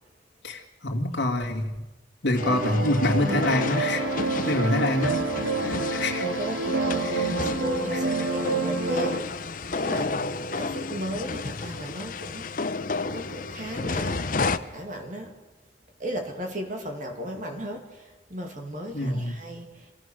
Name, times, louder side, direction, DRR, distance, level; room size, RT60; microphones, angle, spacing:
voice 1, 0.4-1.7 2.2-4.1 4.3-5.2 5.6-6.3 7.0-7.4 7.9-8.1 18.9-19.4, left 1 dB, 85° left, 0 dB, 2.2 m, -26 dB
sound 1, 2.4-14.6, left 4 dB, 50° left, 0.8 m, -32 dB
sound 2, 2.4-9.2, right 2 dB, 80° right, 2.8 m, -27 dB
voice 2, 6.2-12.5 13.1-14.4 14.7-15.3 16.0-19.9, equal, 45° right, 3 dB, 2.4 m, -36 dB
27.5 x 16.0 x 6.3 m, 1.1 s
head